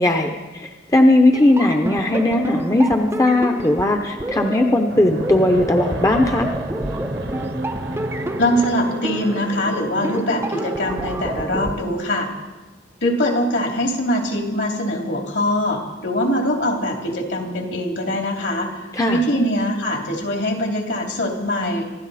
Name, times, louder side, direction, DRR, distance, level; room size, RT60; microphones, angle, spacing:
voice 1, 0.0-6.5 18.9-19.2, left 1 dB, 15° left, 4 dB, 0.7 m, -18 dB
sound 1, 1.3-11.7, right 1 dB, 15° right, 0.5 m, -29 dB
Fixed-wing aircraft airplane, 4.9-12.0, right 1 dB, 70° right, 1.2 m, -32 dB
voice 2, 8.4-12.3 13.0-18.8 19.1-21.8, left 1 dB, 65° left, 1 dB, 3.0 m, -22 dB
25.5 x 12.5 x 4.2 m, 1.2 s
head